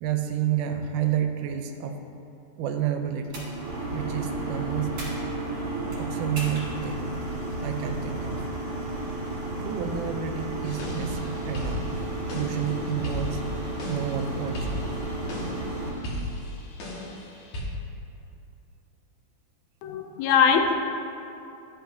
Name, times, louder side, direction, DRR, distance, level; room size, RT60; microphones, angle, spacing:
voice 1, 0.0-2.0 2.6-3.5 3.9-5.0 6.0-7.2 7.6-8.5 9.6-11.9 12.3-13.4 13.9-14.9, right 9 dB, 85° right, 6 dB, 2.1 m, -30 dB
sound 1, 3.2-15.9, right 2 dB, 50° right, 2.4 m, -32 dB
sound 2, 10.7-17.6, left 1 dB, 65° left, 2.3 m, -36 dB
voice 2, 19.8-20.7, left 6 dB, 85° left, 4 dB, 1.6 m, -21 dB
11.5 x 5.2 x 2.6 m, 2.8 s
omnidirectional pair, 3.7 m